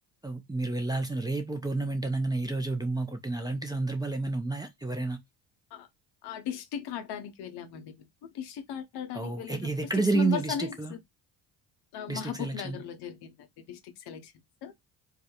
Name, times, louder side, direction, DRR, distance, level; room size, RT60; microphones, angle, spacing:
voice 1, 0.2-5.2 9.1-11.0 12.1-12.8, right 3 dB, 10° right, 0.5 m, -30 dB
voice 2, 6.2-7.9 8.3-9.6 10.1-10.7 11.9-14.3 14.6-14.7, left 8 dB, 70° left, 0.7 m, -37 dB
2.3 x 2.1 x 2.8 m
supercardioid pair, 65°, 41 cm